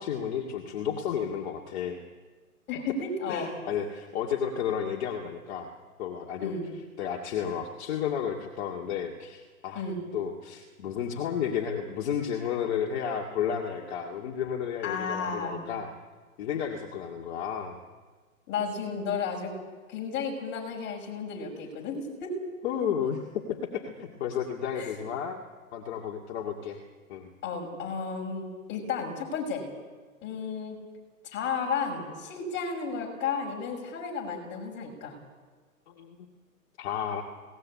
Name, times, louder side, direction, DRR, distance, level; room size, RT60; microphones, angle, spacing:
voice 1, 0.0-2.0 3.3-5.7 6.0-6.6 7.0-9.8 10.1-15.9 16.4-17.8 22.6-25.4 25.7-26.8 27.1-27.3 35.9-36.2 36.8-37.2, left 8 dB, 45° left, 1 dB, 2.4 m, -32 dB
voice 2, 2.7-3.5 6.4-6.7 9.7-10.0 14.8-15.7 18.5-19.5 19.9-22.4 24.7-25.0 27.4-29.6 30.2-30.8 31.3-35.2, left 5 dB, 25° left, 1 dB, 6.0 m, -33 dB
21.5 x 18.5 x 8.6 m, 1.4 s
hypercardioid pair, 135°, 45 cm